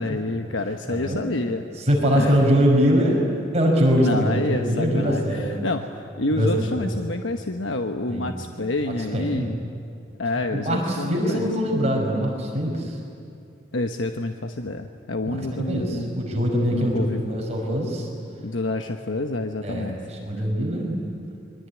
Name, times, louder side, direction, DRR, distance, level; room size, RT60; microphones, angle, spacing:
voice 1, 0.0-1.6 2.1-2.4 4.0-9.6 10.2-11.5 13.7-16.2 16.7-17.5 18.4-20.0 20.4-20.5, left 2 dB, 90° left, 5 dB, 1.1 m, -28 dB
voice 2, 0.9-1.2 1.9-3.2 3.5-5.6 6.3-6.9 8.1-8.3 9.1-9.5 10.5-13.0 15.3-18.1 19.6-21.0, equal, 35° right, 0 dB, 5.7 m, -23 dB
25.5 x 23.0 x 9.7 m, 2.6 s
head